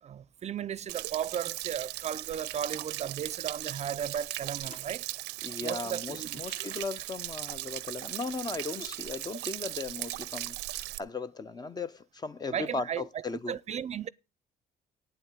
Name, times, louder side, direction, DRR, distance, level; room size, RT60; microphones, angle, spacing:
voice 1, 0.0-5.0 5.6-6.4 12.5-13.1 13.5-14.1, right 9 dB, 40° right, 0.6 m, -35 dB
Stream / Splash splatter / Trickle dribble, 0.9-11.0, right 19 dB, 90° right, 0.5 m, -38 dB
sound 1, 4.5-5.1 5.5-5.6 5.7-6.9 8.1-9.1, left 3 dB, 50° left, 3.0 m, -52 dB
voice 2, 5.4-13.6, left 3 dB, 25° left, 0.7 m, -37 dB
9.1 x 7.8 x 8.2 m
cardioid pair, 110°, 17 cm